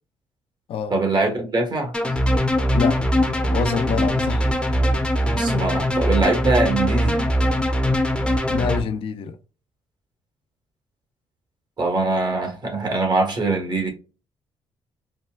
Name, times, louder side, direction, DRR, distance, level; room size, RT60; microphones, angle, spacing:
voice 1, 0.9-1.9 5.3-7.2 11.8-13.9, right 3 dB, 45° right, 1.4 m, -22 dB
sound 1, 1.9-8.8, equal, 10° left, 0.8 m, -21 dB
voice 2, 3.3-4.8 8.5-9.4, left 7 dB, 70° left, 0.6 m, -26 dB
4.3 x 2.2 x 2.3 m
cardioid pair, 85°, 10 cm